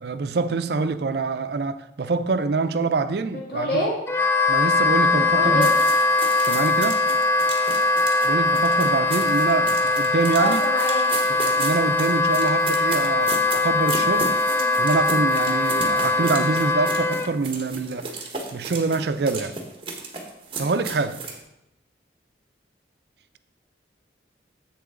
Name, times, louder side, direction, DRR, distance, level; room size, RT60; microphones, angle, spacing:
voice 1, 0.0-3.8 4.5-5.7 6.4-7.0 8.2-10.6 11.3-14.4 14.8-18.1 18.5-19.5 20.6-21.2, right 4 dB, 65° right, 0.5 m, -25 dB
voice 2, 3.5-3.9 5.1-5.8 10.4-11.1 14.5-14.7, left 1 dB, 60° left, 1.4 m, -26 dB
Wind instrument woodwind instrument, 4.1-17.3, left 3 dB, 15° left, 0.4 m, -21 dB
sound 1, 5.6-21.4, right 4 dB, 30° right, 1.2 m, -34 dB
7.7 x 6.9 x 3.7 m
head